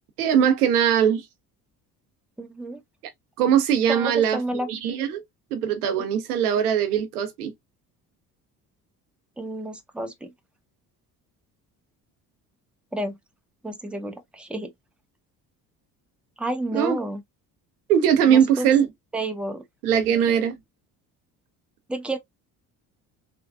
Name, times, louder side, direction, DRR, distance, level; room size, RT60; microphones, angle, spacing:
voice 1, 0.2-1.2 3.4-4.4 4.7-5.2 5.5-7.5 16.7-17.0 17.9-18.9 19.8-20.5, right 8 dB, 90° right, 0.7 m, -20 dB
voice 2, 2.4-2.8 3.9-4.7 9.4-10.3 12.9-13.2 13.6-14.7 16.4-17.2 18.2-18.7 19.1-19.6 19.9-20.0 20.3-20.5 21.9-22.2, right 1 dB, ahead, 0.7 m, -31 dB
3.4 x 2.2 x 2.3 m
hypercardioid pair, 60°, 44 cm